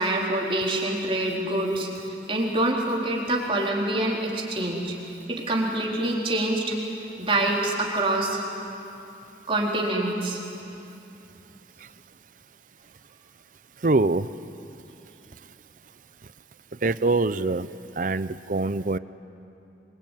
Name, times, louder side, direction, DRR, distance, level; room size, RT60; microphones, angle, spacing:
voice 1, 0.0-4.9 5.3-6.8 7.2-8.4 9.5-10.4, right 1 dB, 30° right, -2 dB, 4.1 m, -26 dB
voice 2, 13.8-14.3 16.8-17.7 18.0-19.0, right 3 dB, 50° right, 15 dB, 0.6 m, -23 dB
25.5 x 24.0 x 9.3 m, 2.8 s
head